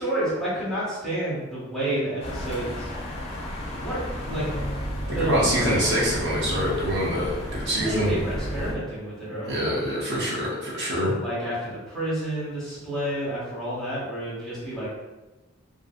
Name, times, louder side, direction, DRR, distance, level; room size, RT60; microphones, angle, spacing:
voice 1, 0.0-2.9 3.7-4.5 5.1-5.9 7.7-9.8 11.2-14.9, right 1 dB, ahead, -9 dB, 0.9 m, -30 dB
sound 1, 2.2-8.7, left 1 dB, 30° left, 0.4 m, -32 dB
voice 2, 5.2-8.1 9.5-11.1, equal, 55° right, -5 dB, 0.6 m, -25 dB
2.5 x 2.5 x 2.3 m, 1.1 s
head